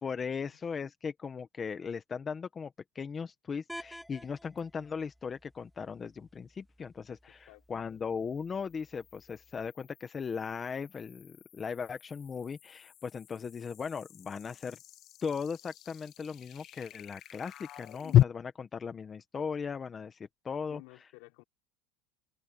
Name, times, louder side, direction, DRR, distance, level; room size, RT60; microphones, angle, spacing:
voice 1, 0.0-14.8 15.2-20.8, left 6 dB, 20° left, 1.3 m, -38 dB
sound 1, 3.7-9.7, equal, ahead, 2.9 m, -53 dB
sound 2, 4.6-4.7 8.1-18.2, left 12 dB, 40° left, 0.5 m, -35 dB
voice 2, 7.3-7.6 20.7-21.4, left 27 dB, 65° left, 4.7 m, -54 dB
supercardioid pair, 135°, 0 cm